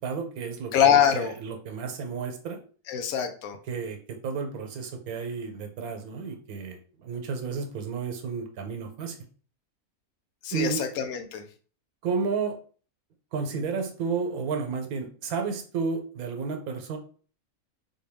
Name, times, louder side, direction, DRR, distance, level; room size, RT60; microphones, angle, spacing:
voice 1, 0.0-2.6 3.7-9.2 10.5-10.8 12.0-12.6 13.3-17.0, right 5 dB, 90° right, 5 dB, 1.2 m, -32 dB
voice 2, 0.7-1.3 2.9-3.6 10.4-11.4, left 8 dB, 75° left, 7 dB, 1.1 m, -23 dB
4.1 x 2.3 x 3.4 m, 0.41 s
omnidirectional pair, 1.5 m